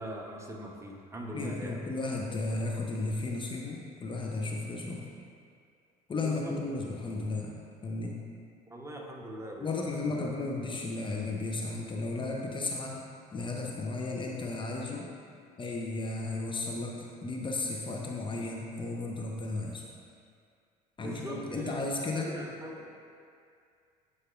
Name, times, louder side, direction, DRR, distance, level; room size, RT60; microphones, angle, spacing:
voice 1, 0.0-1.8 6.2-6.5 8.7-9.7 10.0-10.3 21.0-21.8 22.1-22.9, equal, 15° right, 0 dB, 0.9 m, -41 dB
voice 2, 1.3-5.0 6.1-8.2 9.6-13.0 13.3-15.1 15.6-19.8 21.0-22.3, left 2 dB, 25° left, -1 dB, 0.8 m, -34 dB
9.4 x 4.8 x 2.5 m, 2.3 s
hypercardioid pair, 65°, 20 cm